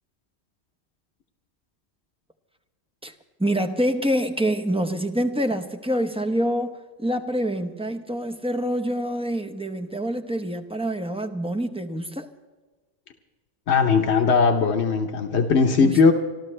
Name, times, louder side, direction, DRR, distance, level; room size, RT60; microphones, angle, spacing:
voice 1, 3.4-12.3 15.8-16.0, equal, 5° right, 0.9 m, -26 dB
voice 2, 13.7-16.1, left 5 dB, 80° left, 1.2 m, -19 dB
26.0 x 13.0 x 3.3 m
omnidirectional pair, 1.1 m